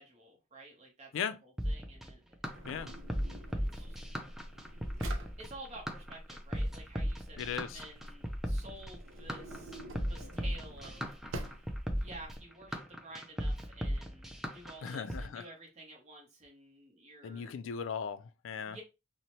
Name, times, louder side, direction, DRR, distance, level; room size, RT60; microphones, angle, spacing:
voice 1, 0.0-2.2 3.6-4.1 4.6-4.8 5.4-9.8 10.1-11.6 12.0-17.6 18.6-18.8, right 2 dB, 35° right, 0.8 m, -51 dB
sound 1, 1.6-15.2, equal, ahead, 0.3 m, -36 dB
Drawer open or close, 2.5-12.4, right 1 dB, 80° right, 0.5 m, -47 dB
voice 2, 7.4-7.8 14.8-15.4 17.2-18.8, left 7 dB, 80° left, 0.3 m, -37 dB
2.7 x 2.0 x 2.9 m
head